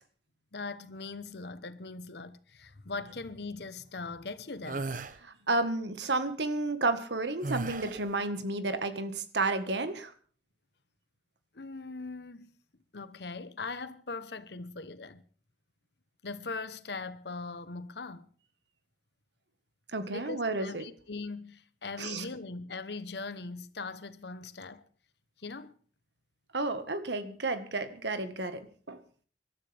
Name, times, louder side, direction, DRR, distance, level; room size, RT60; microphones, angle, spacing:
voice 1, 0.5-4.9 11.5-12.5 12.9-15.2 16.2-18.3 20.1-24.8 25.4-25.7, left 3 dB, 70° left, 1.0 m, -40 dB
sound 1, 4.6-5.2 7.4-8.1, right 3 dB, 45° right, 0.9 m, -35 dB
voice 2, 5.2-10.1 19.9-20.8 22.0-22.2 26.5-28.6 28.9-29.0, right 2 dB, 75° right, 1.6 m, -31 dB
25.5 x 12.5 x 3.5 m
head